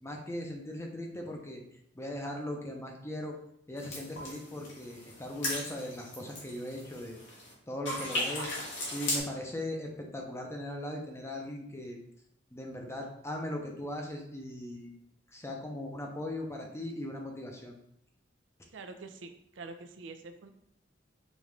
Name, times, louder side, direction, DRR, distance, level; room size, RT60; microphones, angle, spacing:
voice 1, 0.0-1.6 1.9-3.3 3.7-7.2 7.7-8.5 8.9-12.0 12.5-14.9 15.3-17.7, left 1 dB, 15° left, 0 dB, 0.6 m, -39 dB
sound 1, 3.8-7.5 7.8-9.2, left 1 dB, 80° left, 1.3 m, -37 dB
voice 2, 18.7-20.5, right 3 dB, 80° right, 7 dB, 0.5 m, -46 dB
5.1 x 2.5 x 3.2 m, 0.75 s
head